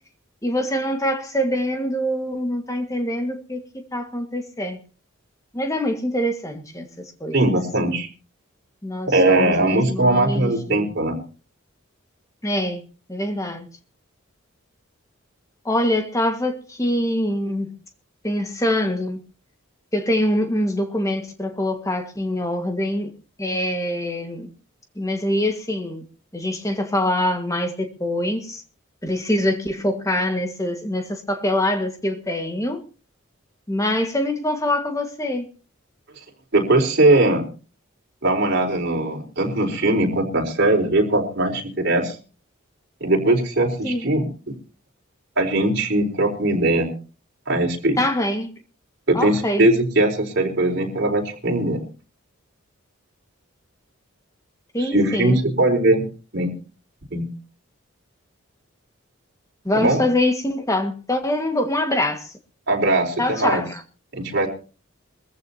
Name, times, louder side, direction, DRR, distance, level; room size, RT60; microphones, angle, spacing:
voice 1, 0.4-4.8 5.5-7.5 8.8-10.9 12.4-12.8 13.1-13.7 15.6-17.8 18.2-19.2 19.9-23.1 23.4-24.5 24.9-26.0 26.3-28.6 29.0-32.8 33.7-35.5 43.8-44.1 48.0-48.5 49.1-49.7 54.7-55.4 59.6-62.3 63.2-63.8, left 1 dB, 15° left, 1.6 m, -24 dB
voice 2, 7.3-8.1 9.1-11.2 36.5-37.4 38.2-42.2 43.0-44.3 45.4-46.9 47.5-48.0 49.1-51.8 54.8-56.0 56.3-56.5 57.1-57.3 59.7-60.0 62.7-63.6 64.1-64.5, right 2 dB, 55° right, 4.3 m, -20 dB
23.0 x 14.5 x 2.8 m
head